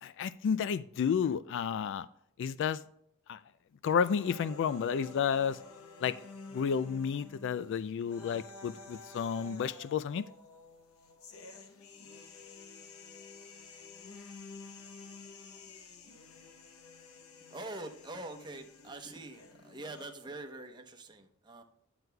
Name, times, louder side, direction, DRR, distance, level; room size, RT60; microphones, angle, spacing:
voice 1, 0.0-2.1 2.4-2.8 3.3-3.4 3.8-5.6 6.0-6.2 6.5-10.3, left 7 dB, 60° left, 16 dB, 0.3 m, -31 dB
sound 1, 4.1-20.1, left 3 dB, 85° left, 0.9 m, -51 dB
voice 2, 17.5-21.6, right 2 dB, 20° right, 4 dB, 0.9 m, -44 dB
10.5 x 7.9 x 2.3 m, 0.74 s
head